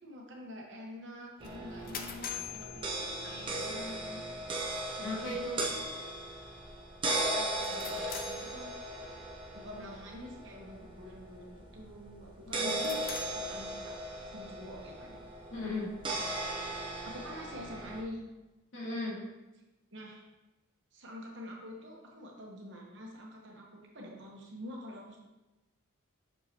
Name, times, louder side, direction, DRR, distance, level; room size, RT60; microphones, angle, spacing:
voice 1, 0.0-3.0 3.2-4.2 7.3-8.7 9.5-12.8 13.5-14.0 14.3-15.2 17.0-18.2 19.9-20.2 20.9-25.2, left 1 dB, 55° right, -1 dB, 1.1 m, -46 dB
sound 1, 1.4-3.7 7.5-9.1 12.5-14.3, left 6 dB, 40° left, 0.5 m, -45 dB
sound 2, 1.4-18.0, right 1 dB, 20° right, 0.8 m, -38 dB
voice 2, 5.0-5.6 12.4-13.0 15.5-15.9 18.7-19.2, left 2 dB, 55° left, -6 dB, 2.1 m, -37 dB
6.6 x 5.4 x 2.9 m, 1.1 s
head